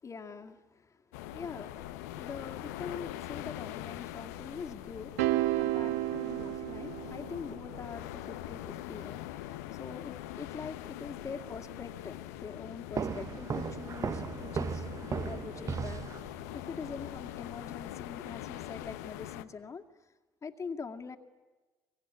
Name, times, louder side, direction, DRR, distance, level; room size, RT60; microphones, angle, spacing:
voice 1, 0.0-0.6 1.3-5.1 5.5-16.0 16.5-19.8 20.4-21.2, left 5 dB, 40° left, 4 dB, 2.3 m, -43 dB
sound 1, 1.1-19.4, left 14 dB, 85° left, 0.9 m, -43 dB
sound 2, 5.2-7.6, right 17 dB, 90° right, 0.8 m, -31 dB
sound 3, 12.9-16.6, right 6 dB, 40° right, 1.0 m, -36 dB
24.5 x 23.0 x 9.8 m, 1.3 s
hypercardioid pair, 60°, 8 cm